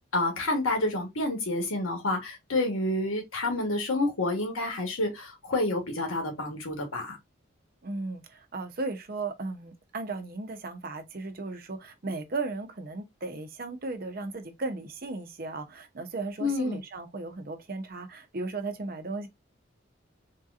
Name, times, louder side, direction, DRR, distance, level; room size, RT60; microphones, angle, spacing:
voice 1, 0.1-7.2 16.4-16.8, left 2 dB, 90° left, 1.2 m, -29 dB
voice 2, 7.8-19.3, right 3 dB, 45° right, 0.6 m, -36 dB
3.6 x 2.8 x 2.4 m
head